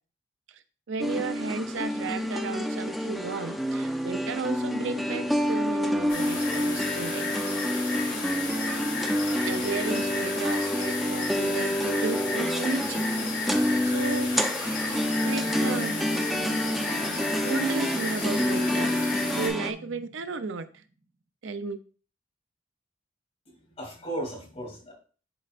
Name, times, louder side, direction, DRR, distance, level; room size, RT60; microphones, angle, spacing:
voice 1, 0.9-7.5 9.4-13.0 13.6-14.3 15.2-16.0 17.4-20.8 21.4-21.8, right 4 dB, 85° right, 10 dB, 0.6 m, -34 dB
sound 1, 1.0-19.7, equal, ahead, 0.5 m, -28 dB
sound 2, 6.1-19.5, left 4 dB, 80° left, 3.4 m, -33 dB
sound 3, 14.5-20.8, right 2 dB, 45° right, 0.8 m, -42 dB
voice 2, 23.5-24.9, right 1 dB, 35° left, -2 dB, 2.8 m, -36 dB
11.0 x 4.4 x 2.5 m, 0.39 s
head